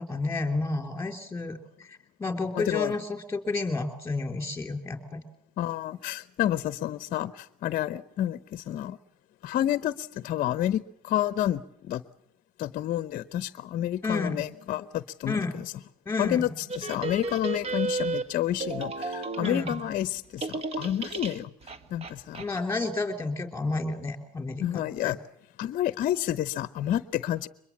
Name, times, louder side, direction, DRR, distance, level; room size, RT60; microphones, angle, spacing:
voice 1, 0.0-1.6 1.9-5.2 14.0-14.4 15.3-15.5 16.0-16.5 19.4-19.8 22.4-25.1, left 3 dB, 10° left, 6 dB, 3.3 m, -31 dB
voice 2, 2.5-3.0 5.6-9.0 9.4-12.0 12.6-15.7 16.2-21.5 21.9-22.4 24.6-25.2 25.6-27.5, left 12 dB, 45° left, 15 dB, 0.8 m, -29 dB
sound 1, 16.7-20.1 20.4-22.6, right 3 dB, 30° right, 1.6 m, -33 dB
23.0 x 22.0 x 7.3 m, 0.72 s
supercardioid pair, 100°, 19 cm